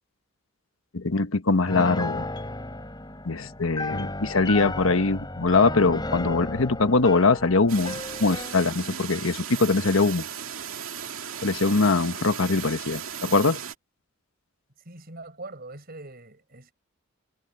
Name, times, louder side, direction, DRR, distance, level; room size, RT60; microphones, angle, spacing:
voice 1, 0.9-2.2 3.2-10.2 11.4-13.6, left 3 dB, 80° left, 1.2 m, -22 dB
Piano, 1.7-8.6, left 2 dB, 20° left, 5.3 m, -34 dB
sound 1, 7.7-13.7, right 8 dB, 90° right, 2.2 m, -36 dB
voice 2, 14.8-16.7, right 2 dB, 50° right, 6.1 m, -42 dB
head